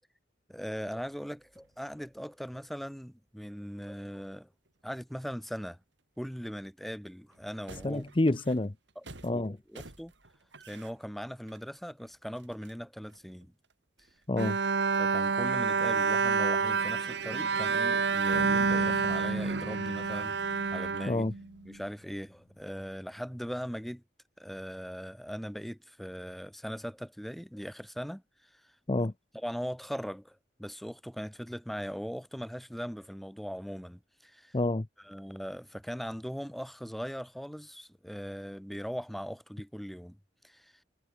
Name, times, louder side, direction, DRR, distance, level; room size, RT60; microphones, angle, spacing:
voice 1, 0.5-4.5 4.8-5.8 6.2-8.0 8.9-9.0 9.3-10.1 10.7-13.5 15.0-21.2 21.6-24.0 24.4-28.2 28.5-28.7 29.3-34.6 35.0-40.2 40.4-40.7, equal, ahead, 1.5 m, -40 dB
sound 1, 0.9-6.3 6.9-7.0 7.2-14.2 14.6-14.7 15.0-17.1 17.4-18.3, right 2 dB, 80° right, 3.8 m, -56 dB
voice 2, 7.8-8.7 9.2-9.6 14.3-14.6 21.1-21.3 28.9-29.1 34.5-34.9, left 2 dB, 30° left, 0.7 m, -28 dB
Bowed string instrument, 14.4-21.7, right 5 dB, 65° right, 0.8 m, -28 dB
sound 2, 18.3-22.4, left 2 dB, 85° left, 1.4 m, -48 dB
head